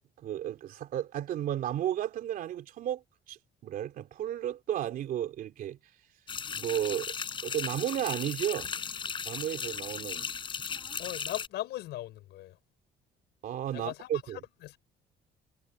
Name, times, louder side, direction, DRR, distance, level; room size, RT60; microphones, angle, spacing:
voice 1, 0.2-3.0 3.3-3.4 3.6-5.8 6.5-7.1 7.4-8.7 9.2-10.3 13.4-14.4, right 11 dB, 55° right, 3.2 m, -33 dB
sound 1, 6.3-11.5, left 6 dB, 30° left, 7.2 m, -37 dB
voice 2, 11.0-12.6 13.7-14.8, left 15 dB, 80° left, 5.7 m, -39 dB
cardioid pair, 175°, 17 cm